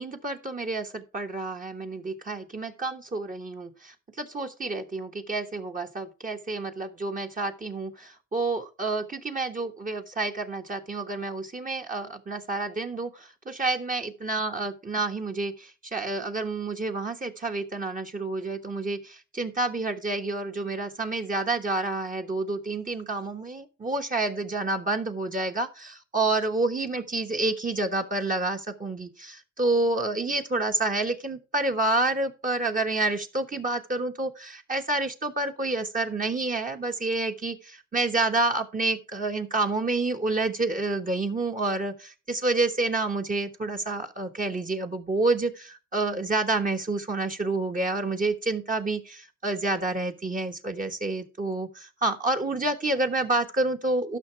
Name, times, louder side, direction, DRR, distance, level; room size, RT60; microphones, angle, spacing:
voice 1, 0.0-54.2, right 2 dB, 25° right, 3 dB, 1.2 m, -29 dB
12.5 x 5.8 x 4.5 m, 0.32 s
cardioid pair, 90°, 30 cm